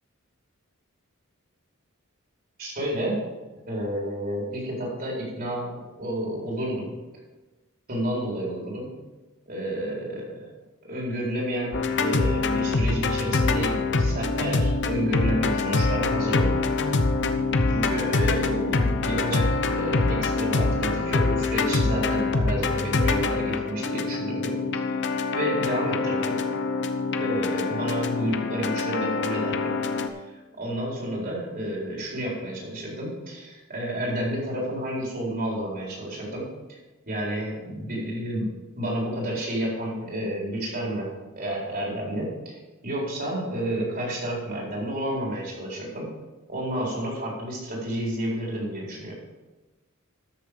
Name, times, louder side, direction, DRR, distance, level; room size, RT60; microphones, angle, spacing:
voice 1, 2.6-3.3 3.7-6.9 7.9-8.9 9.5-10.5 10.8-16.8 17.7-25.0 25.3-26.5 27.2-29.8 30.2-36.8 37.1-46.2 46.5-49.1, equal, 45° right, -3 dB, 4.2 m, -30 dB
sound 1, 11.7-30.1, left 3 dB, 55° left, 0.9 m, -25 dB
13.0 x 7.0 x 5.1 m, 1.2 s
head